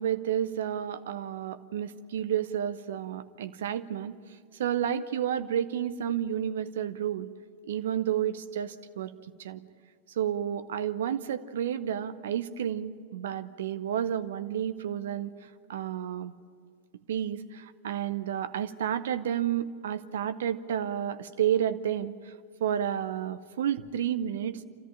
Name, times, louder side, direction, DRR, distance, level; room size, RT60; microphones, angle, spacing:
voice 1, 0.0-4.1 4.5-7.3 7.6-9.1 9.4-9.6 10.2-15.3 15.7-16.3 17.1-22.3 22.6-24.6, right 10 dB, 60° right, 12 dB, 0.7 m, -31 dB
28.5 x 14.0 x 9.9 m, 2.2 s
figure-of-eight pair, 90°, 0 cm